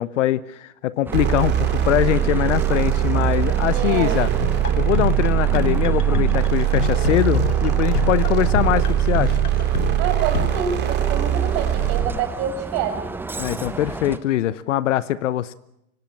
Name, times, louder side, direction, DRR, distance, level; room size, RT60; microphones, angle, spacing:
voice 1, 0.0-4.3 4.8-9.4 13.4-15.5, left 13 dB, 55° left, 17 dB, 1.0 m, -22 dB
Bus, 1.1-14.2, right 3 dB, 5° right, 1.0 m, -33 dB
sound 1, 1.1-12.2, right 11 dB, 20° right, 3.0 m, -21 dB
voice 2, 3.7-4.2 10.0-13.0, right 8 dB, 40° right, 7 dB, 6.1 m, -27 dB
sound 2, 4.4-10.5, left 7 dB, 80° left, 2.5 m, -27 dB
25.0 x 18.0 x 9.6 m, 0.82 s
hypercardioid pair, 130°, 45 cm